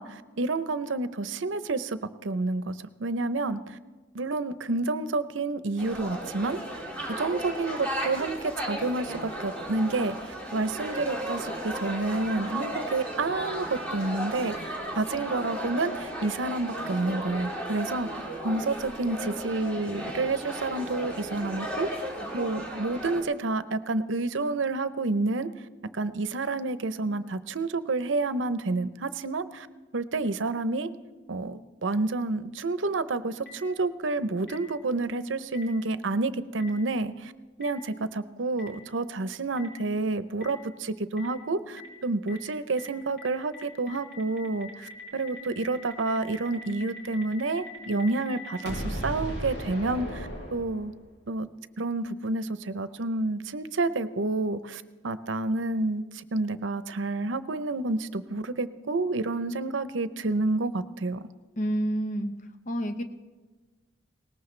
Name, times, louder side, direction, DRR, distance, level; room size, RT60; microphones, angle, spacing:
voice 1, 0.0-3.8 4.1-6.6 7.1-10.2 10.5-25.5 25.9-29.7 29.9-30.9 31.3-37.3 37.6-50.9 51.3-51.5 51.8-61.3, right 3 dB, 90° right, 13 dB, 0.7 m, -29 dB
sound 1, 5.8-23.2, equal, 10° left, 2.4 m, -35 dB
Boom, 33.5-33.6 34.5-34.6 35.5-35.6 36.6-36.7 37.6-37.7 38.6-38.7 39.6-39.7 40.4-40.5 41.2-41.3 41.8-41.9 42.3-42.4 42.8-42.9 43.2-43.3 43.5-51.1, equal, 60° left, 3.8 m, -38 dB
voice 2, 61.6-62.3 62.7-63.0, equal, 45° left, 7 dB, 1.0 m, -28 dB
20.5 x 18.5 x 3.3 m, 1.3 s
head